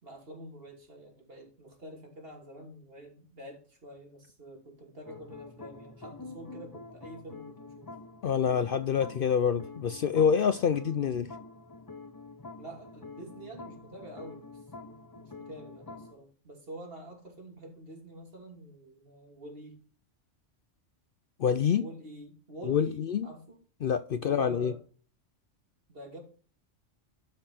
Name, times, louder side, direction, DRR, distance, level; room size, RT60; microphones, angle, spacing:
voice 1, 0.0-7.9 12.6-19.8 21.7-23.6 24.1-24.8 25.9-26.2, right 1 dB, 50° right, 3.1 m, -47 dB
sound 1, 5.0-16.1, left 3 dB, 20° left, 0.7 m, -47 dB
voice 2, 8.2-11.3 21.4-21.8 22.7-23.3 23.8-24.7, left 7 dB, 60° left, 0.6 m, -26 dB
12.0 x 5.9 x 4.3 m
omnidirectional pair, 1.2 m